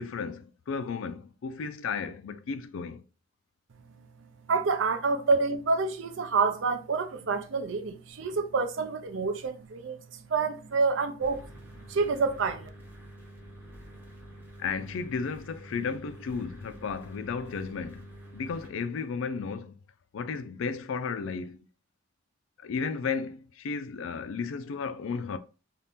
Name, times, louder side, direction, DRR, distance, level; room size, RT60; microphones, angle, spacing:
voice 1, 0.0-3.0 14.6-19.8 20.1-21.7 22.6-25.4, left 5 dB, 70° left, 0.4 m, -34 dB
voice 2, 4.5-11.4 11.8-12.7, right 4 dB, 65° right, 0.5 m, -28 dB
sound 1, 11.2-18.7, right 1 dB, 10° right, 0.7 m, -48 dB
2.8 x 2.4 x 3.4 m
head